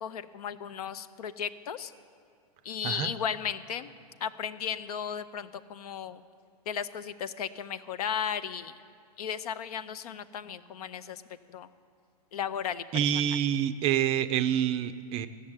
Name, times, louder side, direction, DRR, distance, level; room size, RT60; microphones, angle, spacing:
voice 1, 0.0-1.9 2.6-3.9 4.2-6.2 6.7-8.7 9.2-11.2 11.5-11.7 12.3-12.8 13.1-13.2, left 8 dB, 70° left, 14 dB, 0.6 m, -35 dB
voice 2, 2.8-3.2 12.9-15.3, right 10 dB, 30° right, 12 dB, 0.4 m, -27 dB
14.5 x 6.6 x 8.8 m, 2.2 s
hypercardioid pair, 125°, 20 cm